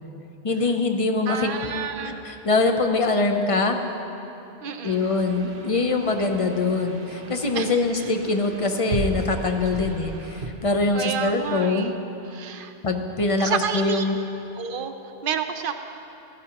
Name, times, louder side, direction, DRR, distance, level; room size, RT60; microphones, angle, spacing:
voice 1, 0.4-1.5 2.0-3.8 4.8-11.9 12.8-14.2, left 3 dB, 40° left, 5 dB, 0.6 m, -23 dB
voice 2, 1.3-2.2 4.6-5.1 7.5-8.1 10.9-12.0 12.3-12.7 13.4-14.1 14.5-15.7, right 7 dB, 60° right, 7 dB, 0.8 m, -30 dB
sound 1, 4.8-10.5, right 2 dB, 80° right, 1.1 m, -36 dB
15.5 x 13.0 x 2.9 m, 2.9 s
omnidirectional pair, 1.0 m